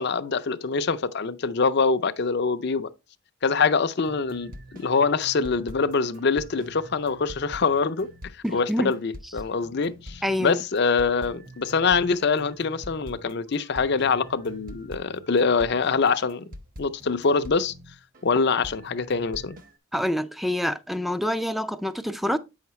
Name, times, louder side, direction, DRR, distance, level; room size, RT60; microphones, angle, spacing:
voice 1, 0.0-2.9 3.4-16.5 16.8-17.7 18.2-19.6, left 4 dB, 50° left, 0.5 m, -24 dB
sound 1, 4.0-18.3 18.6-19.8, equal, 40° right, 1.0 m, -44 dB
voice 2, 8.4-8.9 10.2-10.6 19.9-22.4, equal, ahead, 0.4 m, -26 dB
8.7 x 5.7 x 3.1 m
head